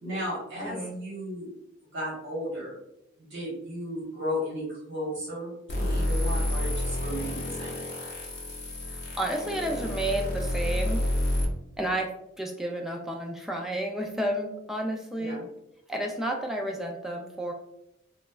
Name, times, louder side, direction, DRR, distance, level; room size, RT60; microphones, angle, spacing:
voice 1, 0.0-1.5 1.9-2.7 3.2-7.8 15.2-15.4, equal, 60° right, -7 dB, 1.2 m, -34 dB
voice 2, 0.6-0.9 9.2-11.0 11.8-12.1 12.4-15.4 15.9-17.5, right 1 dB, ahead, 1 dB, 0.3 m, -31 dB
sound 1, 5.7-11.5, left 1 dB, 50° left, 0.6 m, -29 dB
3.0 x 2.2 x 2.3 m, 0.81 s
head